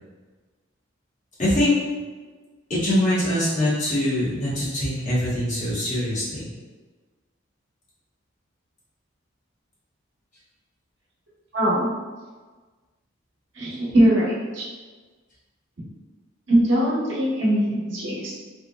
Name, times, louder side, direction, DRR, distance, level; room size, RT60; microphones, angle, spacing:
voice 1, 1.4-1.7 2.8-6.5, left 1 dB, 40° left, -10 dB, 1.2 m, -23 dB
voice 2, 11.5-11.9 13.6-14.7 16.5-18.3, right 1 dB, 70° right, -7 dB, 1.0 m, -21 dB
3.6 x 2.1 x 2.2 m, 1.3 s
head